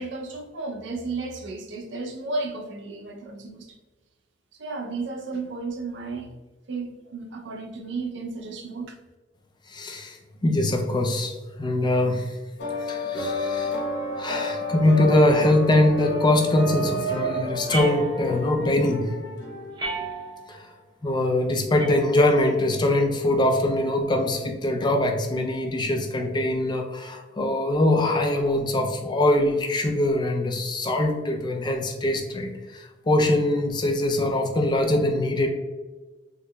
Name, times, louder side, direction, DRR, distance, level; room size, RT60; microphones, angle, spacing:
voice 1, 0.0-3.8 4.5-6.3 6.7-9.0, right 3 dB, 65° right, 3 dB, 0.5 m, -33 dB
voice 2, 9.7-12.4 12.8-13.8 14.2-19.1 20.5-20.7 21.0-35.5, left 1 dB, 25° left, 3 dB, 0.4 m, -23 dB
sound 1, 12.6-20.2, left 1 dB, 60° left, 0.7 m, -30 dB
sound 2, 17.7-18.6 19.8-20.6 21.8-22.6, right 3 dB, 25° right, 0.6 m, -33 dB
3.7 x 3.0 x 2.2 m, 1.2 s
head